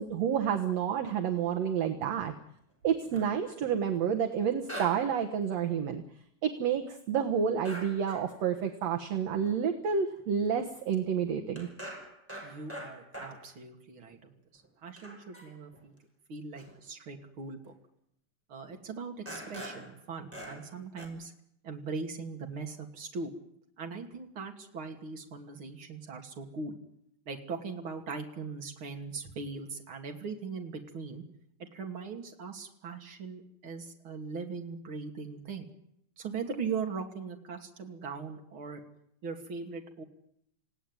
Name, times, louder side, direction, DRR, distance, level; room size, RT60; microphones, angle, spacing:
voice 1, 0.0-2.3 2.8-6.0 6.4-11.7, right 7 dB, 60° right, 4 dB, 2.5 m, -29 dB
sound 1, 2.9-4.1 4.7-5.2 5.4-5.5 7.7-8.3 8.6-8.7 9.3-9.6 10.2-10.3 10.5-10.7 11.0-13.5 14.1-14.2 14.6-14.7 15.0-15.8 16.6-16.8 17.7-17.8 18.7-18.8 19.3-19.9 20.3-20.7 21.0-21.1, equal, 5° right, 5.6 m, -44 dB
voice 2, 12.4-15.9 16.3-17.7 18.5-21.3 21.6-23.3 23.8-26.7 27.3-31.2 31.6-35.7 36.2-38.8 39.2-40.0, right 5 dB, 45° right, 3 dB, 3.2 m, -40 dB
28.0 x 17.0 x 9.7 m, 0.76 s
omnidirectional pair, 3.5 m